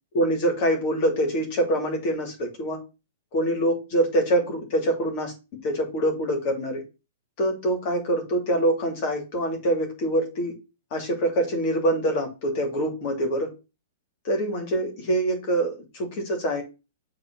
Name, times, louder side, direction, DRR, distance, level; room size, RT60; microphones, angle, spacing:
voice 1, 0.1-2.8 3.3-5.3 5.6-6.8 7.4-10.5 10.9-13.5 14.2-16.6, right 1 dB, 45° left, 3 dB, 2.6 m, -25 dB
6.7 x 3.3 x 6.0 m, 0.29 s
hypercardioid pair, 135°, 0 cm